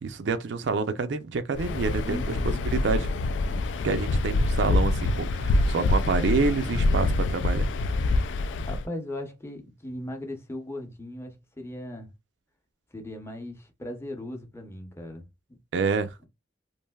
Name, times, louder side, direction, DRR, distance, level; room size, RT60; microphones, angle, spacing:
voice 1, 0.0-2.2 2.4-2.5 2.8-3.1 3.8-7.7 15.7-16.1, right 4 dB, 80° right, 0.4 m, -27 dB
Waves surf, 1.5-8.9, left 2 dB, 85° left, 0.3 m, -25 dB
voice 2, 2.1-2.7 3.5-3.6 8.6-12.1 12.9-15.9, left 1 dB, 15° left, 0.7 m, -38 dB
3.2 x 2.5 x 2.2 m
head